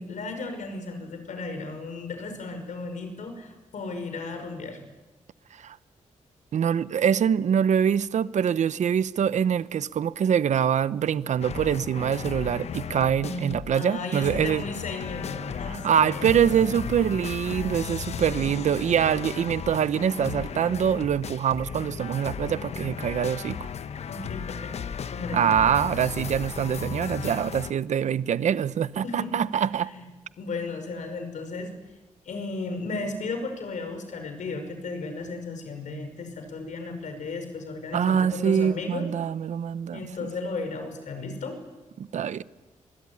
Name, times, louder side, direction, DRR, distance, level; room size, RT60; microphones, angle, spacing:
voice 1, 0.0-4.8 13.2-16.7 17.7-18.2 24.1-25.7 29.0-29.3 29.9-30.0 30.4-31.7 32.3-39.1 39.9-41.6, left 3 dB, 75° left, 5.8 m, -35 dB
voice 2, 6.5-14.6 15.7-23.6 25.3-29.9 37.9-40.1 42.0-42.4, right 8 dB, 70° right, 0.9 m, -24 dB
sound 1, 11.4-13.8 14.1-27.7, left 7 dB, 55° left, 0.9 m, -35 dB
25.0 x 22.5 x 9.8 m
wide cardioid pair, 150°, 13 cm